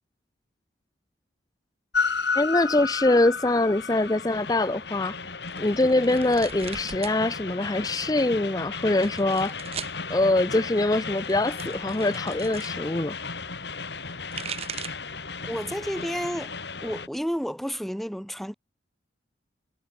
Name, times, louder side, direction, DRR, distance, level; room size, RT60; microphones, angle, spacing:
Train, 1.9-17.1, left 5 dB, 65° left, 3.2 m, -34 dB
voice 1, 2.4-5.2 5.6-9.7 10.1-13.1, left 2 dB, 20° left, 0.5 m, -24 dB
sound 1, 5.4-7.2 7.5-8.2 8.8-10.0 11.0-12.8 14.0-15.1 15.6-16.0 16.4-17.4, right 7 dB, 35° right, 0.7 m, -40 dB
voice 2, 15.4-16.5 16.8-18.5, equal, ahead, 2.2 m, -31 dB
head